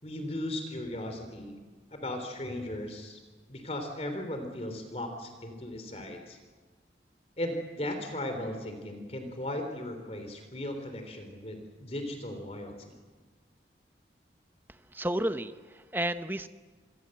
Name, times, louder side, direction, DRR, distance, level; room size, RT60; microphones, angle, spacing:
voice 1, 0.0-1.6 1.9-3.2 3.5-6.4 7.4-12.9, left 1 dB, 35° left, 6 dB, 3.4 m, -37 dB
voice 2, 14.7-16.5, right 1 dB, 10° right, 10 dB, 0.8 m, -32 dB
27.5 x 22.0 x 7.8 m, 1.4 s
head